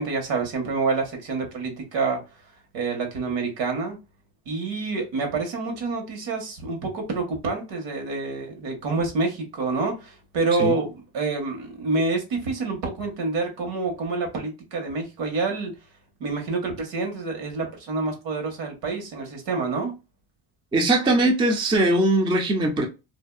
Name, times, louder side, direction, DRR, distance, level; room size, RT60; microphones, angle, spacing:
voice 1, 0.0-2.2 2.7-4.0 4.5-15.8 16.2-19.9, right 3 dB, 80° right, 1.3 m, -27 dB
voice 2, 20.7-22.9, right 2 dB, 10° right, 0.4 m, -20 dB
2.7 x 2.5 x 2.3 m
cardioid pair, 135°, 44 cm